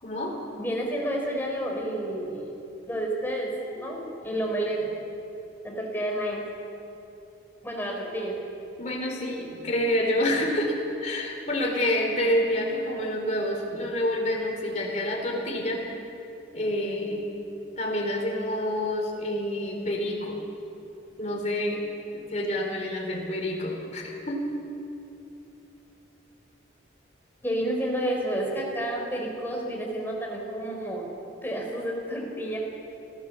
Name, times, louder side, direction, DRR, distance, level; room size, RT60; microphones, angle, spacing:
voice 1, 0.0-0.4 8.8-15.8 16.5-17.3 17.8-20.4 21.2-21.9 22.1-24.5, left 1 dB, 40° left, -1 dB, 4.0 m, -28 dB
voice 2, 0.6-2.5 2.9-4.9 5.6-6.4 7.6-8.3 27.4-31.0 31.4-32.6, right 1 dB, 10° left, -1 dB, 4.4 m, -30 dB
25.5 x 16.5 x 7.2 m, 2.8 s
head